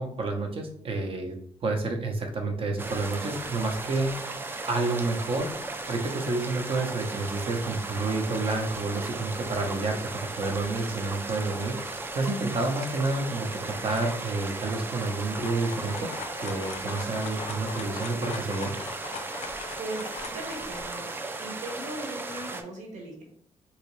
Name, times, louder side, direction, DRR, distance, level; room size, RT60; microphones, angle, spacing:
voice 1, 0.0-4.4 4.7-5.5 5.9-16.1 16.4-18.7, right 3 dB, 45° right, 3 dB, 0.7 m, -29 dB
sound 1, 2.8-22.6, right 3 dB, 15° right, 0.3 m, -36 dB
sound 2, 15.1-20.9, left 6 dB, 65° left, 0.4 m, -41 dB
voice 2, 19.8-21.1 21.4-23.2, right 1 dB, 75° right, 0 dB, 1.2 m, -38 dB
3.1 x 2.8 x 3.0 m, 0.62 s
cardioid pair, 140°, 13 cm